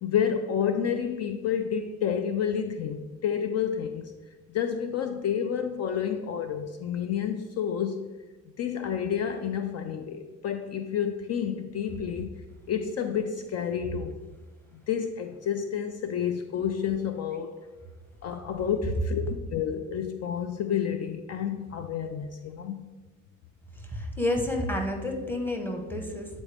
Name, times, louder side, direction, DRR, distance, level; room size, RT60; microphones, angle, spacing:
voice 1, 0.0-4.1 4.5-8.0 8.6-12.3 12.7-14.2 14.9-17.5 18.2-22.9, left 8 dB, 55° left, 0.5 m, -30 dB
voice 2, 23.9-26.3, left 1 dB, 5° left, 1.1 m, -29 dB
8.5 x 4.0 x 3.4 m
cardioid pair, 90°, 30 cm